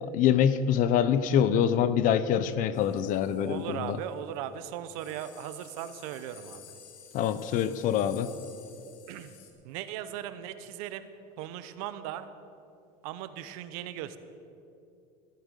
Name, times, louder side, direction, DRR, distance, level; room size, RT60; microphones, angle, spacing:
voice 1, 0.0-4.0 7.1-8.3, left 9 dB, 50° left, 14 dB, 0.7 m, -25 dB
sound 1, 2.7-4.2 4.6-4.7 4.9-9.5, left 9 dB, 70° left, 1.7 m, -53 dB
voice 2, 3.5-6.6 9.1-9.3 9.6-11.1 11.4-12.3 13.0-14.2, right 11 dB, 85° right, 12 dB, 0.9 m, -38 dB
14.5 x 9.1 x 6.5 m, 2.6 s
cardioid pair, 150°, 18 cm